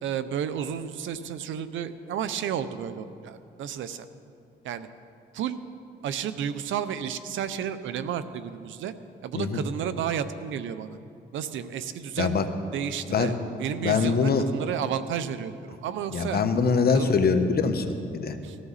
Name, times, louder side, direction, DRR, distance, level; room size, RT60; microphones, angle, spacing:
voice 1, 0.0-4.1 4.6-4.9 5.3-5.6 6.0-8.9 9.2-11.0 11.3-12.4 12.7-16.4 16.9-17.2 18.4-18.6, right 8 dB, 85° right, 12 dB, 0.7 m, -32 dB
voice 2, 13.8-14.5 16.1-18.4, left 5 dB, 55° left, 7 dB, 1.2 m, -23 dB
19.0 x 14.0 x 4.1 m, 2.5 s
cardioid pair, 75°, 19 cm